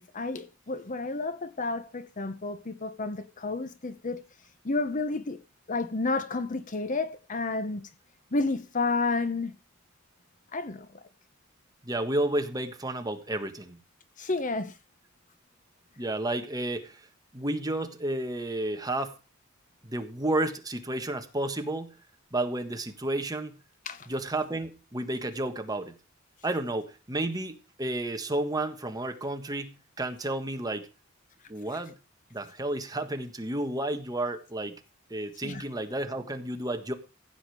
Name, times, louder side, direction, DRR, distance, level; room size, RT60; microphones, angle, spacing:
voice 1, 0.0-4.2 4.6-5.4 5.7-7.8 8.3-9.5 10.5-11.0 14.2-14.7 23.9-24.1 35.4-35.6, left 3 dB, 40° left, 0.9 m, -31 dB
voice 2, 11.8-13.8 16.0-17.0 17.3-19.2 19.8-21.9 22.3-23.6 24.1-25.9 26.4-30.9 31.5-32.0 32.3-34.7 35.1-36.9, right 1 dB, 20° right, 1.5 m, -31 dB
15.5 x 7.3 x 4.8 m
head